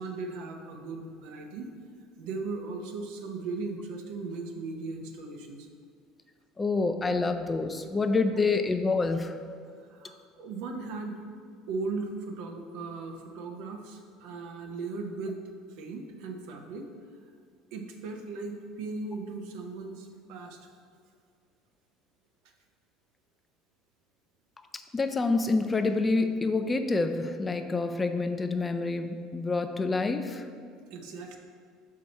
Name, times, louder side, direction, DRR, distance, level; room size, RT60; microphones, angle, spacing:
voice 1, 0.0-1.7 2.2-5.7 9.8-11.2 11.7-15.4 15.7-16.9 17.7-20.6 30.9-31.4, right 3 dB, 75° right, 3 dB, 0.7 m, -37 dB
voice 2, 6.6-9.4 24.9-30.5, left 3 dB, 20° left, 7 dB, 0.4 m, -27 dB
5.7 x 4.7 x 4.1 m, 2.2 s
supercardioid pair, 110°, 0 cm